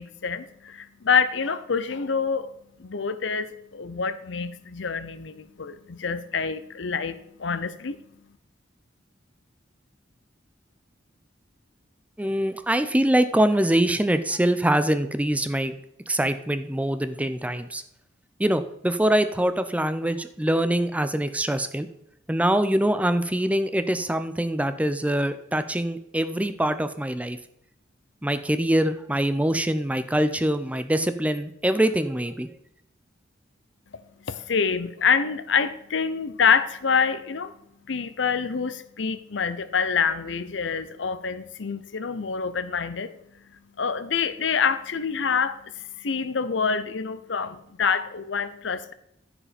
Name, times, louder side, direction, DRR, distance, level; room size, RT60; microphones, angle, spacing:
voice 1, 0.0-2.5 2.8-8.0 34.3-37.5 37.9-43.1 43.8-45.6 46.0-48.9, left 6 dB, 70° left, 13 dB, 0.7 m, -26 dB
voice 2, 12.2-15.7 16.1-17.8 18.4-21.9 22.3-27.4 28.2-32.5, right 1 dB, 10° right, 10 dB, 0.6 m, -24 dB
14.0 x 5.0 x 5.1 m, 0.77 s
head